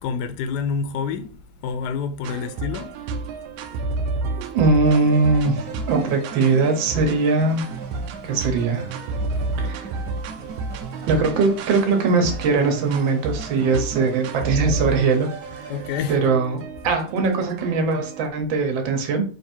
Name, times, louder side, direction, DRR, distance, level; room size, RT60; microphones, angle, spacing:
voice 1, 0.0-2.9 15.7-16.4, left 6 dB, 75° left, 1.0 m, -28 dB
sound 1, 2.2-18.3, right 3 dB, 90° right, 1.4 m, -31 dB
voice 2, 4.4-7.6 8.2-8.9 9.6-9.9 11.1-15.7 16.1-19.2, right 4 dB, 70° right, 1.6 m, -21 dB
sound 2, 4.8-16.2, right 4 dB, 45° right, 1.5 m, -39 dB
3.9 x 2.6 x 4.3 m
omnidirectional pair, 2.2 m